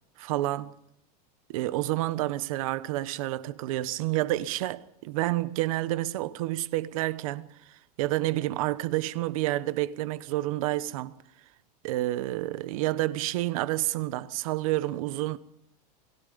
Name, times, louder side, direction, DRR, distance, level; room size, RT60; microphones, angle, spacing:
voice 1, 0.2-0.7 1.5-7.5 8.0-11.1 11.8-15.4, right 16 dB, 60° right, 1.1 m, -29 dB
29.0 x 19.5 x 5.3 m
supercardioid pair, 170°, 20 cm